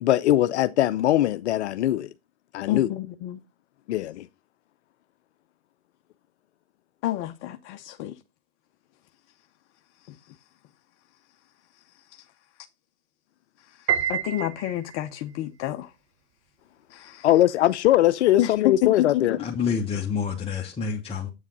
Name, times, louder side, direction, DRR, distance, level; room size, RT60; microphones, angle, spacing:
voice 1, 0.0-2.1 2.5-2.9 3.9-4.3 17.2-19.4, left 13 dB, 75° left, 0.6 m, -21 dB
voice 2, 2.7-3.4 7.0-8.2 10.0-10.4 11.9-12.3 13.6-15.9 16.9-17.3 18.4-19.5, left 14 dB, 40° left, 0.8 m, -29 dB
Piano, 13.9-15.2, right 9 dB, 40° right, 1.2 m, -28 dB
voice 3, 19.4-21.3, left 6 dB, 15° left, 1.3 m, -28 dB
8.1 x 7.3 x 4.1 m
hypercardioid pair, 110°, 34 cm